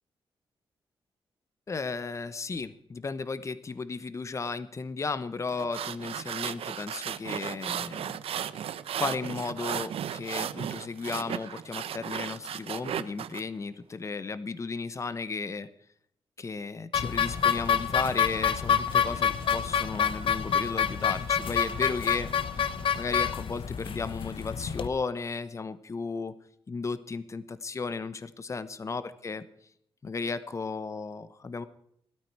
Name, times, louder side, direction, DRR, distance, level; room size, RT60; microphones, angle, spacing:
voice 1, 1.7-8.1 9.0-15.7 16.4-22.3 22.6-22.7 22.9-26.3 26.7-29.4 30.0-31.7, left 4 dB, 30° left, 14 dB, 1.0 m, -34 dB
sound 1, 5.5-13.4, right 9 dB, 90° right, 0.8 m, -35 dB
sound 2, 16.9-24.9, left 7 dB, 65° left, 1.1 m, -27 dB
18.0 x 12.5 x 4.7 m, 0.69 s
wide cardioid pair, 135°, 10 cm